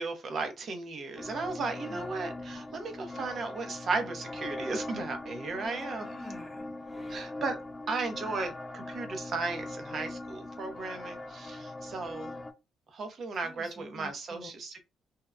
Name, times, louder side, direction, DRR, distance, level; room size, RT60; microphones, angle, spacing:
voice 1, 0.0-6.1 7.1-7.6 7.9-12.3 12.9-14.8, right 3 dB, 55° right, 0.7 m, -35 dB
sound 1, 1.2-12.5, left 2 dB, 20° left, 0.4 m, -41 dB
voice 2, 1.6-2.1 6.0-7.3 13.4-14.5, left 1 dB, 10° right, 1.0 m, -49 dB
2.7 x 2.0 x 2.4 m
cardioid pair, 90°, 0 cm